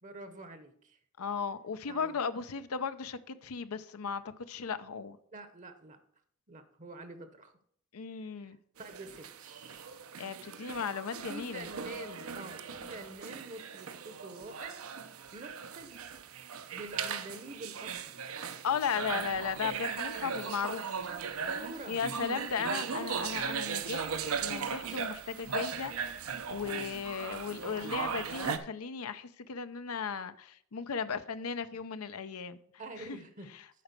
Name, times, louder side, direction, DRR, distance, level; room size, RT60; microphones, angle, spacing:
voice 1, 0.0-1.0 1.9-2.1 5.3-6.0 6.5-7.5 8.8-9.9 11.3-14.8 15.3-16.0 16.7-18.4 21.1-22.0 22.3-23.0 32.8-33.5, right 2 dB, 35° right, 0.9 m, -47 dB
voice 2, 1.2-5.2 7.9-8.6 10.2-11.7 18.4-20.8 21.9-25.9 26.2-32.6 33.0-33.2 33.5-33.6, left 6 dB, 75° left, 0.6 m, -36 dB
sound 1, 8.8-28.6, right 6 dB, 70° right, 0.7 m, -38 dB
8.5 x 5.0 x 6.7 m
head